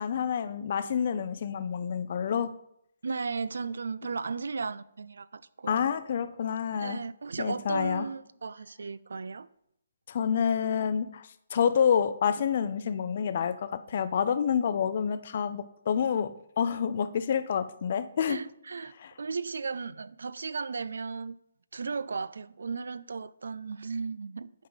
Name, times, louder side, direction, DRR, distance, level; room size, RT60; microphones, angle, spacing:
voice 1, 0.0-2.5 5.7-7.0 7.4-8.1 10.1-18.4 19.0-19.1, left 7 dB, 45° left, 0.5 m, -28 dB
voice 2, 3.0-5.9 6.8-9.5 18.3-18.9 19.2-21.4 21.7-24.5, right 4 dB, 80° right, 0.3 m, -35 dB
8.2 x 3.8 x 4.8 m
hypercardioid pair, 170°, 0 cm